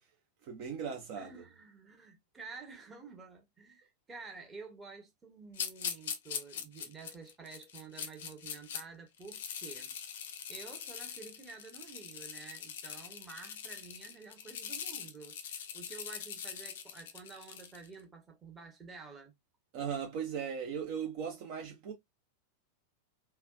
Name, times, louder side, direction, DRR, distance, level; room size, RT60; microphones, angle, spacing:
voice 1, 0.4-1.4 19.7-21.9, right 7 dB, 45° right, 0.7 m, -38 dB
voice 2, 1.2-10.0 10.5-19.3, right 4 dB, 20° right, 1.0 m, -50 dB
sound 1, 5.5-8.8 9.2-17.9, left 8 dB, 60° left, 0.5 m, -42 dB
3.3 x 2.2 x 2.2 m
figure-of-eight pair, 90°, 0 cm